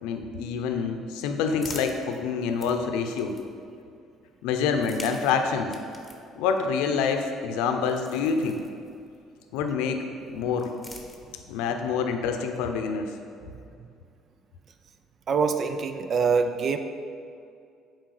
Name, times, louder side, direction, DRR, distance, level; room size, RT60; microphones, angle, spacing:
voice 1, 0.0-3.4 4.4-5.7 6.4-8.6 9.5-10.7 11.5-13.1, left 5 dB, 85° left, 6 dB, 0.7 m, -27 dB
sound 1, 0.8-3.8 4.6-9.2 10.2-11.7, left 1 dB, 5° left, 1.2 m, -47 dB
voice 2, 15.3-16.8, right 5 dB, 45° right, 8 dB, 0.6 m, -24 dB
8.0 x 4.6 x 6.5 m, 2.4 s
cardioid pair, 95°, 0 cm